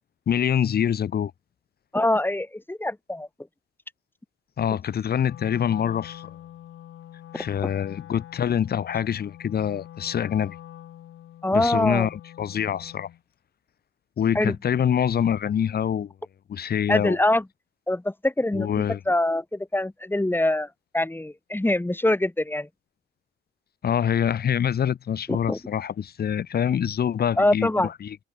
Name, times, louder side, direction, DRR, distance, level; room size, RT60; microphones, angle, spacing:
voice 1, 0.3-1.3 4.6-6.3 7.3-10.6 11.5-13.1 14.2-16.1 16.5-17.2 18.5-19.0 23.8-28.2, left 9 dB, 50° left, 1.3 m, -25 dB
voice 2, 1.9-3.3 7.3-7.4 11.4-12.1 14.3-14.6 16.9-17.4 17.9-20.7 20.9-22.7 25.3-25.6 27.4-27.9, left 1 dB, 10° left, 4.3 m, -24 dB
Wind instrument woodwind instrument, 5.2-13.2, left 12 dB, 75° left, 4.6 m, -45 dB
cardioid pair, 90°, 20 cm